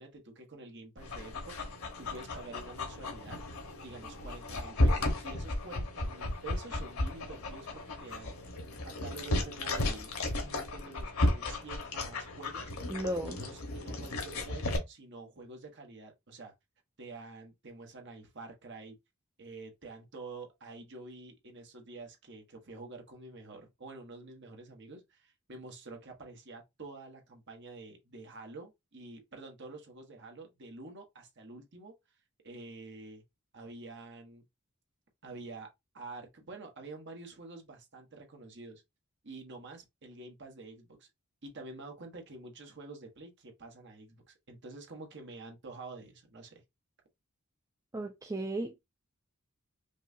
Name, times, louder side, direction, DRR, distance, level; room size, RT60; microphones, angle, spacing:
voice 1, 0.0-3.4 3.8-8.3 8.6-12.7 13.2-16.5 17.0-19.0 19.4-31.9 32.4-33.2 33.5-34.4 35.2-35.7 35.9-38.8 39.2-41.1 41.4-46.6, right 3 dB, 55° right, 1.2 m, -48 dB
Dog, 1.0-14.8, left 1 dB, 85° left, 1.2 m, -34 dB
voice 2, 12.9-13.4 47.9-48.8, right 1 dB, 15° right, 0.4 m, -35 dB
5.4 x 2.4 x 2.6 m
head